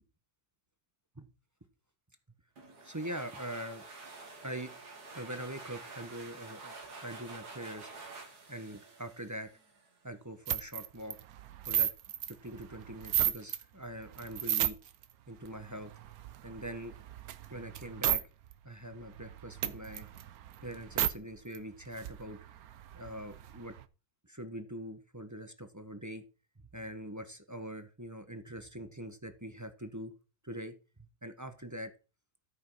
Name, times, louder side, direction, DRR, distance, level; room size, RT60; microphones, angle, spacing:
sound 1, 2.6-10.0, right 3 dB, 90° right, 2.6 m, -49 dB
voice 1, 2.8-3.8 4.4-4.7 5.1-6.8 7.0-7.9 8.5-9.5 10.0-11.2 11.7-11.9 12.3-14.8 15.3-15.9 16.4-16.9 17.5-18.2 18.6-20.1 20.6-22.4 22.9-23.7 24.3-26.2 26.7-30.1 30.4-30.7 31.2-31.9, right 1 dB, 15° right, 8 dB, 0.9 m, -43 dB
sound 2, 10.5-13.6 14.0-15.0 15.5-18.2 18.5-18.6 18.9-21.1 21.6-21.7 21.8-23.8, right 11 dB, 70° right, 1.2 m, -34 dB
13.5 x 5.4 x 5.5 m, 0.32 s
omnidirectional pair, 1.7 m